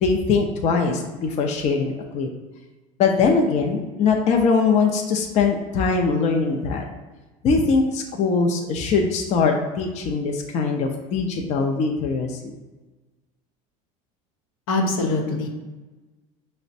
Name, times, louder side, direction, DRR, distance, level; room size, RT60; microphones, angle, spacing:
voice 1, 0.0-2.3 3.0-6.8 7.4-12.5, left 4 dB, 45° left, 2 dB, 0.5 m, -21 dB
voice 2, 14.7-15.5, left 2 dB, 85° left, 1 dB, 0.7 m, -23 dB
5.6 x 2.1 x 2.6 m, 1.2 s
supercardioid pair, 120°, 17 cm